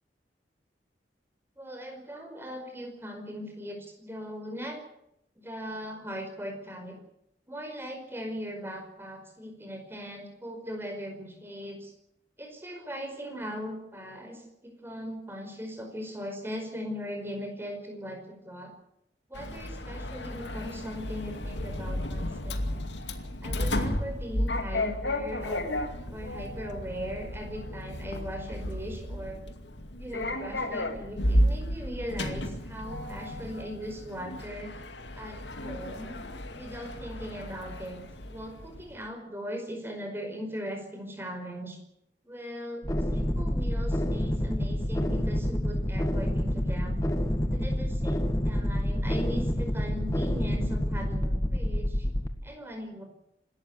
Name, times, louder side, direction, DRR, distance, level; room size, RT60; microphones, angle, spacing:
voice 1, 1.6-4.8 5.4-7.0 7.5-11.9 12.4-18.7 19.3-22.9 23.4-25.7 26.1-29.4 30.0-34.7 35.2-36.2 36.6-38.0 38.3-41.8 42.2-42.8 43.1-47.0 47.5-52.1 52.4-53.0, equal, 15° right, 4 dB, 5.2 m, -39 dB
Sliding door, 19.3-38.9, left 1 dB, 85° left, 2.3 m, -33 dB
sound 1, 42.8-52.3, equal, 20° left, 1.8 m, -28 dB
26.5 x 13.5 x 8.2 m, 0.79 s
head